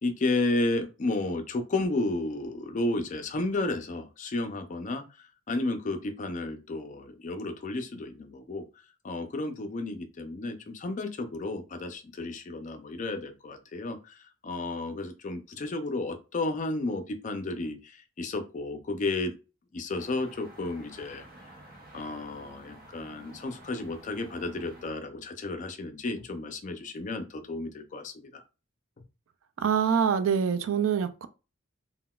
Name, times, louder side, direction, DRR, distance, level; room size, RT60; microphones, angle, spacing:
voice 1, 0.0-8.6 9.0-19.3 19.7-21.3 21.9-28.4, left 2 dB, 40° left, 0.4 m, -32 dB
sound 1, 19.9-24.9, right 1 dB, 45° right, 0.7 m, -51 dB
voice 2, 29.6-31.3, right 7 dB, 70° right, 0.3 m, -25 dB
3.7 x 2.2 x 2.3 m
head